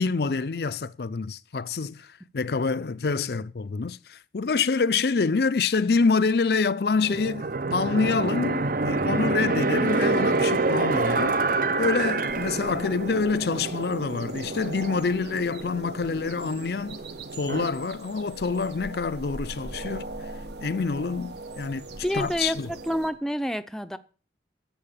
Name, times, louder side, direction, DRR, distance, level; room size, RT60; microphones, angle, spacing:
voice 1, 0.0-11.4 11.8-17.0 17.4-20.1 20.6-21.9 22.1-22.7, left 4 dB, 65° left, 0.5 m, -26 dB
sound 1, 7.0-17.7, right 3 dB, 50° right, 0.8 m, -27 dB
sound 2, 12.2-23.1, right 2 dB, 75° right, 1.4 m, -40 dB
voice 2, 22.0-24.0, equal, 5° left, 0.6 m, -28 dB
11.5 x 7.9 x 8.7 m
head